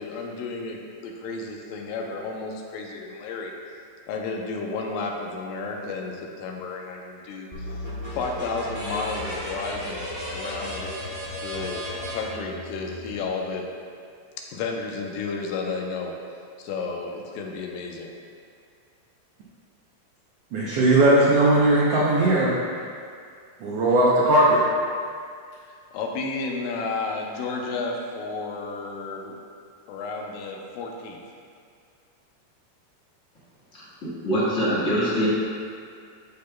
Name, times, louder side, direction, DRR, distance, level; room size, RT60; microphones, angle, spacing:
voice 1, 0.0-3.5 4.1-7.8 8.1-13.7 14.5-16.1 16.6-18.1 25.9-29.4 29.9-31.2, left 3 dB, 90° left, 1 dB, 2.4 m, -32 dB
sound 1, 7.5-13.1, left 1 dB, 15° right, 0.5 m, -34 dB
voice 2, 20.5-22.5 23.6-24.6, right 1 dB, 85° right, -5 dB, 1.3 m, -18 dB
voice 3, 33.8-35.3, equal, 35° left, -9 dB, 1.2 m, -24 dB
13.5 x 5.2 x 2.3 m, 2.2 s
omnidirectional pair, 3.9 m